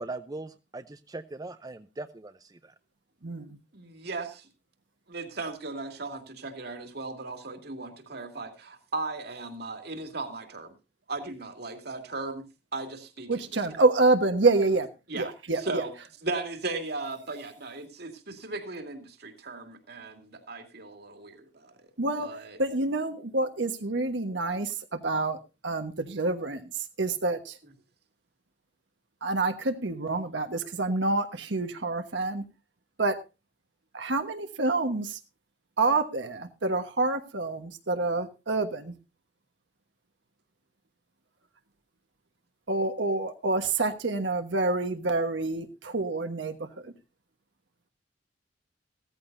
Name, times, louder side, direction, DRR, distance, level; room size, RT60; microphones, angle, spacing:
voice 1, 0.0-2.7, right 2 dB, 20° right, 9 dB, 0.6 m, -40 dB
voice 2, 3.2-3.6 13.3-14.9 15.1-15.8 22.0-22.3 22.6-25.4 25.6-27.6 29.2-32.4 33.0-33.2 33.9-35.2 35.8-38.9 42.7-46.9, right 3 dB, 80° right, 6 dB, 1.3 m, -27 dB
voice 3, 3.7-4.5 5.1-10.7 11.1-12.5 12.7-13.3 15.1-15.9 16.2-21.9 22.2-22.6, right 3 dB, 60° right, 5 dB, 2.4 m, -37 dB
16.0 x 14.0 x 2.6 m, 0.28 s
head